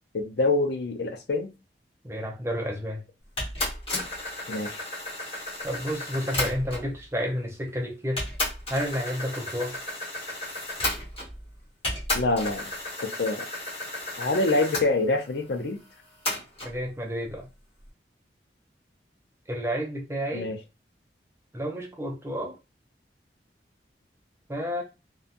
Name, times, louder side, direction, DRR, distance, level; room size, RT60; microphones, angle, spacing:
voice 1, 0.1-1.5 4.5-4.8 12.1-12.7 13.0-13.5 14.2-15.8 20.3-20.6, left 2 dB, 70° left, 0.5 m, -26 dB
voice 2, 2.0-3.0 5.6-8.3 8.7-9.8 16.6-17.5 19.5-20.5 21.5-22.5 24.5-24.8, equal, 15° right, 0.6 m, -30 dB
sound 1, 3.4-6.9 7.7-7.8 8.2-11.5 11.8-14.9 16.3-16.7, left 1 dB, 30° left, 1.3 m, -33 dB
2.7 x 2.3 x 2.4 m
head